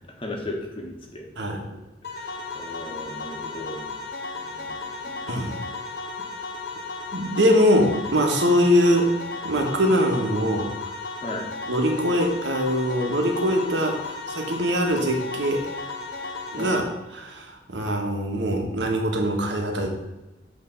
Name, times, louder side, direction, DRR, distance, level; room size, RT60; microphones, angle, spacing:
voice 1, 0.2-1.2 2.1-3.9 4.4-4.8 11.2-11.5 16.6-16.7, left 1 dB, 30° left, 1 dB, 1.2 m, -36 dB
sound 1, 2.0-16.8, left 3 dB, 70° left, 1.2 m, -35 dB
voice 2, 7.1-9.1 9.4-10.7 11.7-15.7 16.5-16.8 17.1-19.9, equal, 85° right, 2 dB, 1.4 m, -22 dB
8.5 x 3.3 x 6.5 m, 1.0 s
head